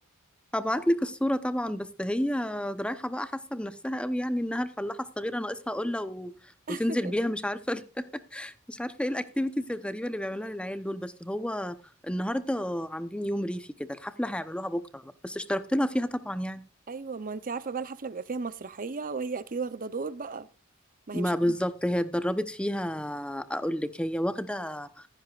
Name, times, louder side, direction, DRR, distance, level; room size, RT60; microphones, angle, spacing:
voice 1, 0.5-6.3 6.7-11.8 12.0-16.6 21.1-24.9, equal, 5° left, 0.8 m, -30 dB
voice 2, 16.9-20.5 21.1-21.6, right 4 dB, 40° right, 0.7 m, -35 dB
15.5 x 13.5 x 2.5 m
head